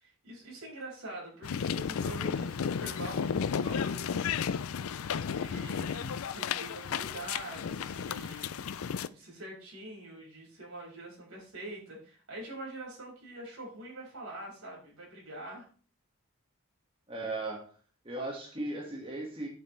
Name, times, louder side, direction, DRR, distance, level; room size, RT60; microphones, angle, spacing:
voice 1, 0.0-4.2 5.0-8.8 9.1-15.7, right 1 dB, 85° right, -3 dB, 5.8 m, -45 dB
sound 1, 1.4-9.1, left 7 dB, 80° left, 0.4 m, -33 dB
voice 2, 17.1-17.7 18.0-19.5, right 2 dB, 25° right, -1 dB, 1.8 m, -37 dB
9.6 x 8.8 x 3.3 m, 0.40 s
head